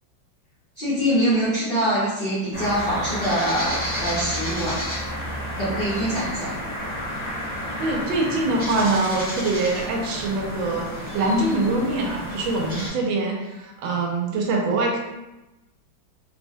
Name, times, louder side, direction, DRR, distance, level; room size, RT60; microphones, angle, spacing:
voice 1, 0.8-4.8 5.5-6.6, equal, 45° left, -13 dB, 0.7 m, -24 dB
sound 1, 2.5-12.9, equal, 5° left, 0.9 m, -31 dB
voice 2, 7.8-10.9 11.1-15.0, right 2 dB, 85° right, 0 dB, 1.3 m, -24 dB
3.2 x 2.1 x 2.6 m, 1.0 s
omnidirectional pair, 2.1 m